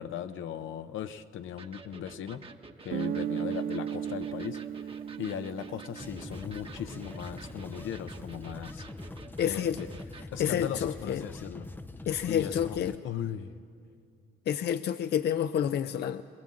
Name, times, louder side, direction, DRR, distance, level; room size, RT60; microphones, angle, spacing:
voice 1, 0.0-2.4 2.8-8.8 9.4-9.9 10.3-11.7 12.3-13.6, left 9 dB, 80° left, 10 dB, 0.8 m, -38 dB
Electric guitar, 1.6-10.3, right 4 dB, 25° right, 1.1 m, -50 dB
Guitar, 2.9-7.5, right 9 dB, 50° right, 0.5 m, -36 dB
sound 1, 5.9-13.0, left 2 dB, 10° left, 0.5 m, -44 dB
voice 2, 9.4-9.8 10.4-11.3 12.1-12.9 14.5-16.2, left 9 dB, 55° left, 12 dB, 0.5 m, -29 dB
21.5 x 19.5 x 7.6 m, 2.3 s
cardioid pair, 90°, 20 cm